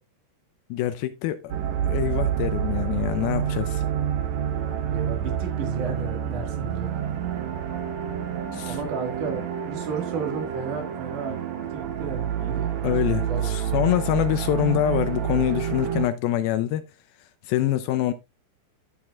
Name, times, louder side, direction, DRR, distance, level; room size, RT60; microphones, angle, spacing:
voice 1, 0.7-1.5 1.9-3.8 8.5-8.8 12.8-16.8 17.4-18.1, left 12 dB, 85° left, 2.1 m, -25 dB
sound 1, 1.5-16.1, right 9 dB, 85° right, 1.6 m, -28 dB
voice 2, 4.9-6.9 8.7-11.4 11.7-12.7 13.1-13.5, right 4 dB, 55° right, 3.0 m, -33 dB
14.0 x 6.6 x 2.4 m
omnidirectional pair, 4.9 m